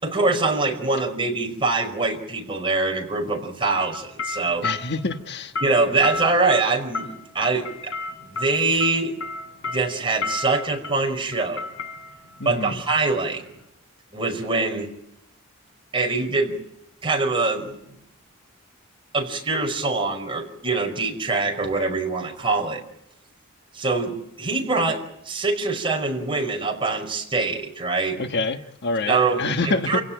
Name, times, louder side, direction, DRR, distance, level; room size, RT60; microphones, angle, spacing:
voice 1, 0.0-4.7 5.6-7.9 8.2-9.1 9.7-11.7 12.4-13.4 14.1-14.9 15.9-16.6 17.0-18.0 19.1-22.8 23.7-28.2 29.1-30.0, right 3 dB, 25° right, 5.3 m, -24 dB
sound 1, 3.8-13.6, left 3 dB, 70° left, 4.5 m, -34 dB
voice 2, 4.6-5.5 12.4-12.8 28.2-30.0, left 3 dB, 55° left, 1.4 m, -26 dB
28.5 x 17.0 x 9.1 m
head